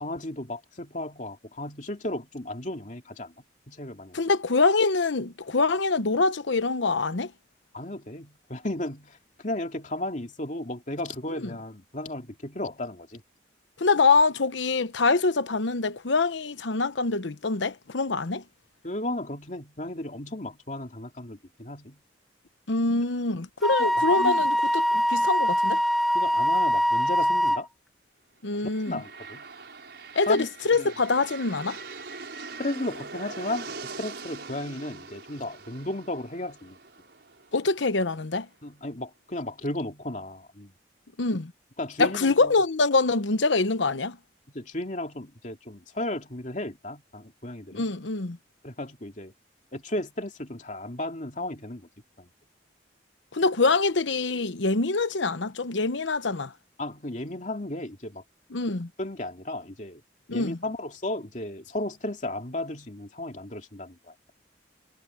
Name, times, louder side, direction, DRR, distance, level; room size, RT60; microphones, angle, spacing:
voice 1, 0.0-3.3 3.7-4.2 7.7-13.2 18.8-22.0 22.9-23.0 23.8-24.5 26.1-27.7 28.6-29.4 30.1-30.9 32.6-36.8 38.6-40.7 41.8-42.5 44.5-47.9 48.6-49.3 49.7-51.9 52.2-52.3 56.8-58.2 59.0-60.0 60.3-64.3, left 1 dB, 40° left, 2.7 m, -34 dB
voice 2, 4.1-7.3 13.8-18.4 22.7-25.8 28.4-29.0 30.2-31.8 37.5-38.5 41.2-41.5 42.0-44.2 47.7-48.4 53.3-56.5 58.5-58.9 60.3-60.6, left 3 dB, 85° left, 1.0 m, -24 dB
Wind instrument woodwind instrument, 23.6-27.6, equal, ahead, 1.3 m, -23 dB
sound 1, 28.5-38.3, right 4 dB, 65° right, 6.3 m, -42 dB
head